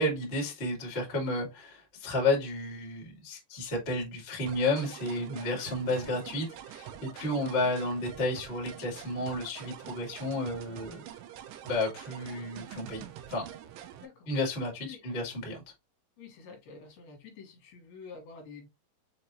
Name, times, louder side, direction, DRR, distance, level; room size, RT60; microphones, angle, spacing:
voice 1, 0.0-11.0 11.6-13.5 14.3-15.6, left 2 dB, 80° left, 0.5 m, -32 dB
sound 1, 4.5-14.1, right 10 dB, 80° right, 2.7 m, -46 dB
voice 2, 14.0-14.3 14.8-15.0 16.2-18.7, left 5 dB, 65° left, 2.9 m, -48 dB
7.0 x 2.6 x 2.9 m
omnidirectional pair, 5.1 m